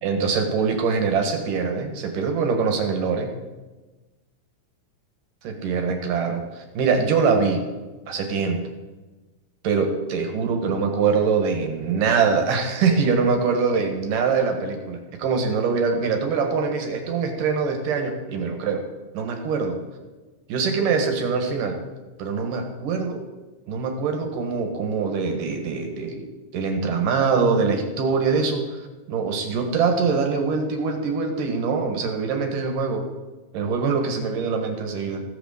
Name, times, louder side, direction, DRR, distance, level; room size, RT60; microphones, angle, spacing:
voice 1, 0.0-3.3 5.4-7.6 8.1-8.6 9.6-18.8 19.1-19.8 20.5-21.8 22.2-23.2 23.7-26.3 26.5-33.0 33.5-35.2, right 5 dB, 85° right, 4 dB, 3.2 m, -23 dB
15.5 x 6.1 x 7.0 m, 1.2 s
omnidirectional pair, 3.7 m